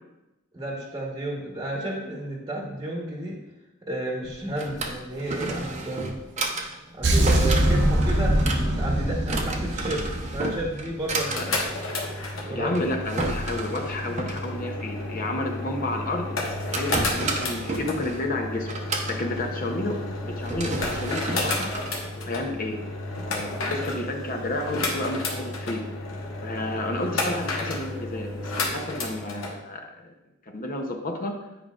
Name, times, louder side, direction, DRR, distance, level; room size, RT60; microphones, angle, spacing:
voice 1, 0.5-3.4 3.9-6.2 6.9-10.0 10.3-11.6 12.4-12.8, right 1 dB, 20° right, -1 dB, 1.1 m, -32 dB
Drawer open or close, 4.2-22.8, right 2 dB, 35° right, 0.7 m, -33 dB
sound 1, 7.0-11.1, right 1 dB, 60° right, 0.9 m, -23 dB
sound 2, 11.0-29.5, left 2 dB, 80° left, 1.2 m, -32 dB
voice 2, 12.5-18.7 19.1-21.7 22.1-22.8 23.1-25.9 26.4-30.1 30.5-31.4, left 2 dB, 45° left, 3 dB, 0.7 m, -31 dB
9.4 x 5.1 x 2.4 m, 0.98 s
head